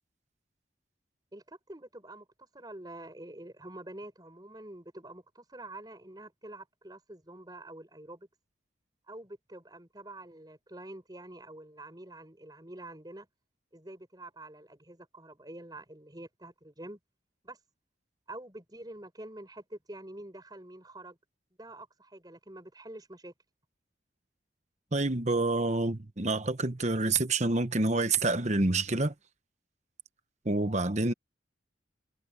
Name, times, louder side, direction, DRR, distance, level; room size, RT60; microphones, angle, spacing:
voice 1, 1.3-8.3 9.1-13.3 13.7-17.0 17.4-17.6 18.3-21.2 21.6-23.3, right 1 dB, 20° right, 5.4 m, -47 dB
voice 2, 24.9-29.1 30.4-31.1, right 2 dB, 40° right, 1.1 m, -27 dB
head